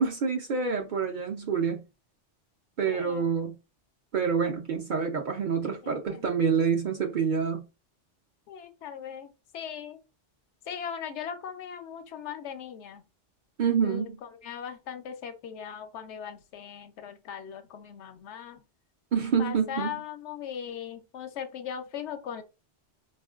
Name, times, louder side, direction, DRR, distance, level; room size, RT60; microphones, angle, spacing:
voice 1, 0.0-1.8 2.8-3.6 4.1-7.6 13.6-14.2 19.1-19.9, right 6 dB, 55° right, 0.6 m, -27 dB
voice 2, 2.9-3.3 5.8-6.2 8.5-10.0 10.7-13.1 13.8-18.6 19.4-22.4, left 8 dB, 75° left, 0.9 m, -39 dB
4.3 x 2.4 x 2.3 m
omnidirectional pair, 1.2 m